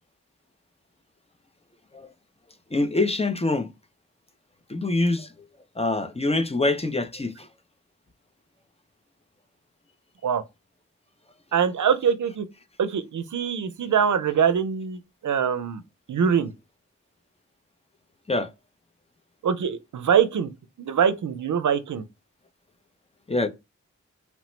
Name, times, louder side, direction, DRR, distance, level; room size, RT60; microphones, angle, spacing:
voice 1, 2.7-3.7 4.7-5.3 5.8-7.5 18.3-18.5 23.3-23.5, left 2 dB, 20° left, 0.4 m, -24 dB
voice 2, 11.5-12.5 12.8-15.8 16.1-16.5 19.4-20.5 20.8-22.0, right 7 dB, 80° right, 0.5 m, -23 dB
3.1 x 2.0 x 3.0 m
wide cardioid pair, 60°, 30 cm